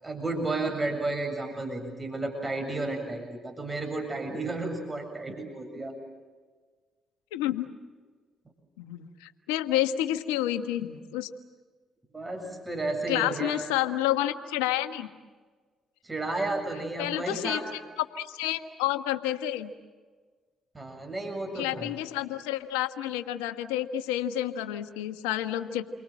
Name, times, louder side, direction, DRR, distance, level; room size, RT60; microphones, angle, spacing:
voice 1, 0.0-6.0 12.1-13.6 16.0-17.6 20.7-22.0, right 2 dB, 25° right, 4 dB, 7.5 m, -32 dB
voice 2, 7.3-7.7 8.8-11.3 13.1-15.1 17.0-17.6 18.1-19.7 21.5-25.8, left 13 dB, 85° left, 9 dB, 1.4 m, -29 dB
30.0 x 24.0 x 7.6 m, 1.5 s
hypercardioid pair, 55°, 0 cm